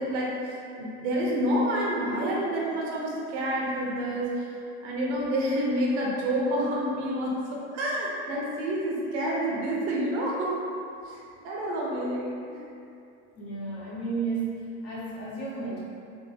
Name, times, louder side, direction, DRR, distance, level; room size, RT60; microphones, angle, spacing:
voice 1, 0.0-4.5 4.8-10.6 11.1-12.6, right 1 dB, 75° right, -4 dB, 0.9 m, -28 dB
voice 2, 13.4-14.5 14.8-15.8, right 4 dB, 40° left, -6 dB, 1.0 m, -32 dB
3.3 x 2.1 x 3.3 m, 2.5 s
supercardioid pair, 100°, 35 cm